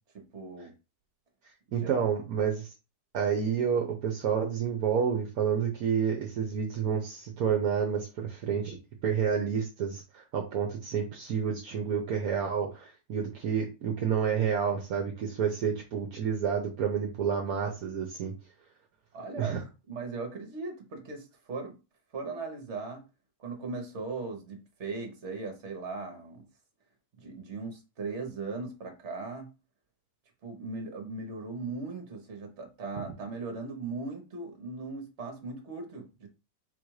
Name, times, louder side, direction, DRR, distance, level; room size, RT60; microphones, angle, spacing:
voice 1, 0.1-0.7 1.7-2.1 19.1-19.6 19.9-21.8 22.1-23.1 23.4-26.5 27.2-29.5 30.4-36.3, right 3 dB, 50° right, 1.3 m, -38 dB
voice 2, 1.7-2.7 3.1-8.8 9.0-18.3 19.4-19.6, right 7 dB, 70° right, 1.1 m, -29 dB
4.2 x 2.5 x 4.7 m
omnidirectional pair, 1.7 m